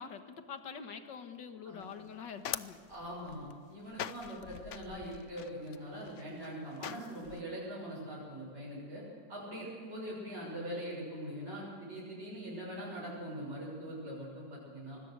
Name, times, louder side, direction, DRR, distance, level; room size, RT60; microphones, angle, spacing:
voice 1, 0.0-2.8 9.5-9.7, left 6 dB, 80° left, 7 dB, 2.2 m, -45 dB
sound 1, 1.8-7.4, left 10 dB, 60° left, 0.8 m, -45 dB
voice 2, 2.9-9.0 9.3-15.0, equal, 35° right, -6 dB, 7.0 m, -42 dB
25.5 x 20.5 x 6.6 m, 2.3 s
omnidirectional pair, 1.9 m